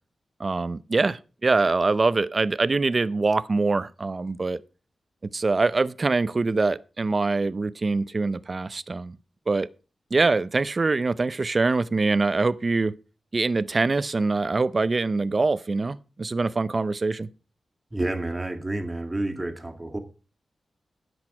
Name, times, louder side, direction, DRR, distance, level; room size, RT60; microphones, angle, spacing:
voice 1, 0.4-4.6 5.3-9.2 9.5-9.7 10.1-12.9 13.3-17.3, right 3 dB, 45° right, 0.6 m, -24 dB
voice 2, 17.9-20.0, right 2 dB, 20° right, 2.0 m, -29 dB
10.5 x 8.1 x 4.9 m
cardioid pair, 65°, 0 cm